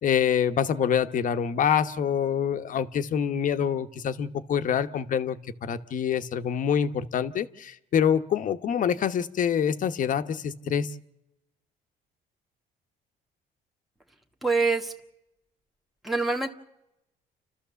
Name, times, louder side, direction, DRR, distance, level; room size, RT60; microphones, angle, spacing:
voice 1, 0.0-10.9, left 8 dB, 50° left, 9 dB, 1.2 m, -26 dB
voice 2, 14.4-14.9 16.0-16.5, right 3 dB, ahead, 2 dB, 1.6 m, -25 dB
29.5 x 13.5 x 7.0 m, 0.85 s
cardioid pair, 110°, 17 cm